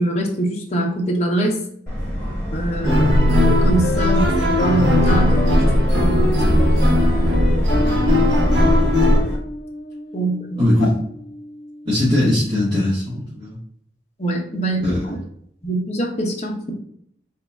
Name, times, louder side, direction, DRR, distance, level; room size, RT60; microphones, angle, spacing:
voice 1, 0.0-1.6 2.5-4.3 4.6-5.7 5.9-6.6 10.1-10.9 14.2-15.2 15.6-16.7, right 1 dB, 35° left, -1 dB, 0.8 m, -24 dB
Subway metro underground, 1.9-9.4, equal, 10° left, 1.7 m, -28 dB
sound 1, 2.8-9.2, left 1 dB, 80° right, 1.0 m, -17 dB
sound 2, 3.3-12.0, left 2 dB, 55° left, 0.4 m, -30 dB
voice 2, 10.6-10.9 11.8-13.6 14.8-15.0, left 1 dB, 30° right, -11 dB, 1.6 m, -19 dB
4.0 x 2.7 x 3.4 m, 0.68 s
head